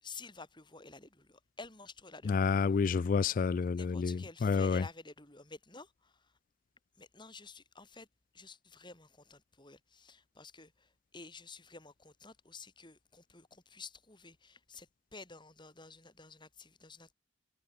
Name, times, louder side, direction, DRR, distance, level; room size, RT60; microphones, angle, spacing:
voice 1, 0.0-2.6 3.8-6.3 7.0-8.1 8.3-17.1, left 4 dB, 25° left, 4.5 m, -51 dB
voice 2, 2.2-4.8, left 5 dB, 40° left, 0.3 m, -29 dB
head